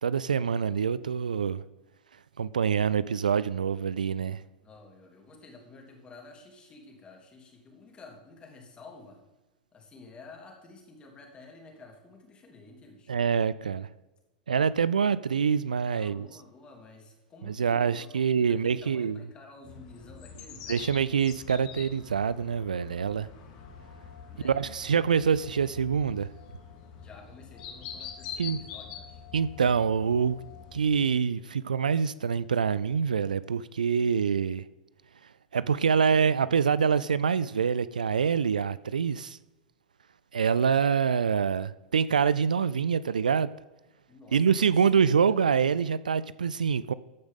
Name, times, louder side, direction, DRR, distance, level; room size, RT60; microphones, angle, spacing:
voice 1, 0.0-1.6 2.4-4.4 13.1-13.9 14.5-16.3 17.5-19.2 20.7-23.3 24.4-26.3 28.4-28.6 29.3-30.4 30.7-34.7 35.5-39.4 40.3-43.5 44.3-46.9, right 6 dB, 75° right, 0.4 m, -25 dB
voice 2, 4.6-9.2 9.7-13.2 15.9-20.8 24.3-24.5 27.0-29.2 44.1-45.0, left 3 dB, 25° left, 3.0 m, -51 dB
sound 1, 19.6-31.1, left 7 dB, 45° left, 2.1 m, -45 dB
14.5 x 9.4 x 3.8 m
figure-of-eight pair, 90°, 4 cm